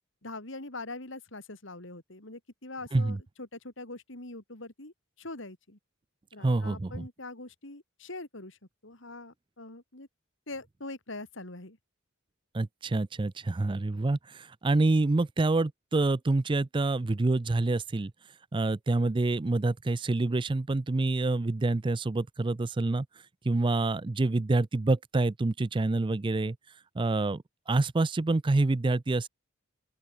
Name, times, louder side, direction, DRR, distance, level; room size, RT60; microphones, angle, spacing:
voice 1, 0.2-5.8 6.3-8.6 8.8-10.1 10.5-11.8, left 2 dB, 65° left, 3.2 m, -43 dB
voice 2, 6.4-7.1 12.5-18.1 18.5-23.1 23.4-26.6 27.0-29.3, right 2 dB, 25° right, 0.4 m, -27 dB
open air
head